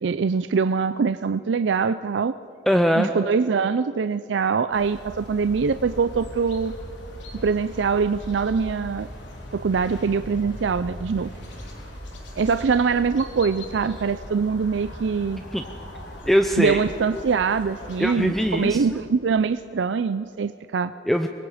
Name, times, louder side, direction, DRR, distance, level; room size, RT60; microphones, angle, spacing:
voice 1, 0.0-2.3 3.0-6.7 7.4-9.1 9.5-11.3 12.4-15.4 16.6-20.9, right 5 dB, 85° right, 12 dB, 0.4 m, -23 dB
voice 2, 2.7-3.1 15.5-15.6 16.3-16.8 18.0-19.0 21.1-21.3, equal, ahead, 6 dB, 0.6 m, -21 dB
sound 1, 4.7-18.8, equal, 90° left, 3.5 m, -39 dB
25.0 x 21.5 x 5.0 m, 2.8 s
head